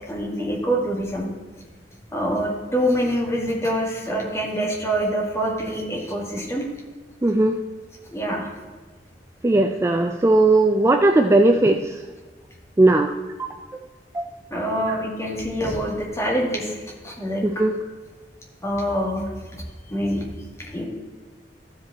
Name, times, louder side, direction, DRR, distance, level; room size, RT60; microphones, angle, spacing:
voice 1, 0.1-1.3 2.1-6.6 8.1-8.5 14.5-16.7 17.0-17.4 18.6-19.6 19.9-20.2 20.7-20.8, equal, 15° left, -2 dB, 2.0 m, -25 dB
voice 2, 7.2-7.6 9.4-12.0 12.8-13.5 14.1-14.3 14.9-15.0 17.4-17.8, right 2 dB, 15° right, 4 dB, 0.3 m, -18 dB
14.0 x 5.2 x 4.1 m, 1.3 s
head